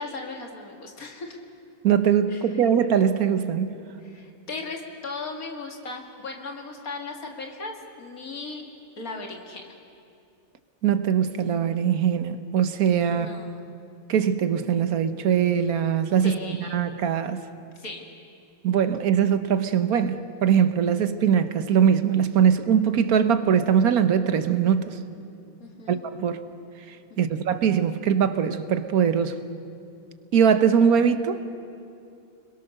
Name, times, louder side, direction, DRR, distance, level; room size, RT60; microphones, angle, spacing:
voice 1, 0.0-1.4 2.3-2.6 4.0-8.7 9.0-9.7 13.1-13.6 16.2-16.8 17.8-18.1 25.6-26.0 27.1-27.4, left 3 dB, 80° left, 2 dB, 2.8 m, -37 dB
voice 2, 1.8-3.8 10.8-13.3 14.1-16.3 16.6-17.4 18.6-25.0 25.9-26.4 26.9-29.4 30.3-31.4, right 8 dB, 85° right, 10 dB, 1.5 m, -22 dB
30.0 x 22.0 x 6.6 m, 2.5 s
omnidirectional pair, 1.5 m